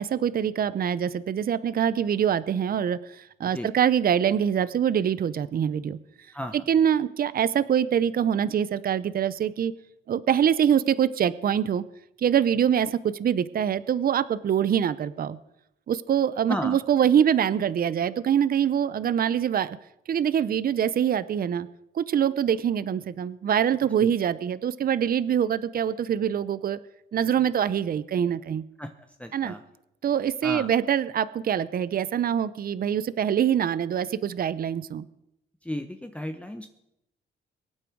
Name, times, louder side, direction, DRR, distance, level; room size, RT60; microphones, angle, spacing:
voice 1, 0.0-6.0 6.7-9.7 10.1-11.8 12.2-15.4 15.9-19.8 20.1-21.7 21.9-26.8 27.1-28.6 29.3-29.5 30.0-35.1, right 9 dB, 50° right, 16 dB, 0.7 m, -24 dB
voice 2, 6.3-6.6 16.5-16.8 24.0-24.1 28.8-29.6 30.4-30.7 35.6-36.7, left 1 dB, 5° left, 6 dB, 1.0 m, -34 dB
24.0 x 8.8 x 4.7 m, 0.83 s
cardioid pair, 90°, 20 cm